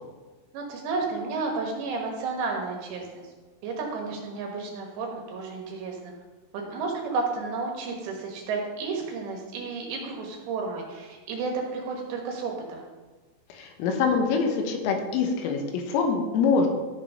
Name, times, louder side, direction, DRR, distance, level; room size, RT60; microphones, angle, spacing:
voice 1, 0.5-3.3 3.6-6.1 6.5-12.8, right 4 dB, 70° right, 0 dB, 3.4 m, -32 dB
voice 2, 13.5-16.7, left 5 dB, 90° left, 4 dB, 3.8 m, -24 dB
13.5 x 5.2 x 5.6 m, 1.3 s
omnidirectional pair, 5.7 m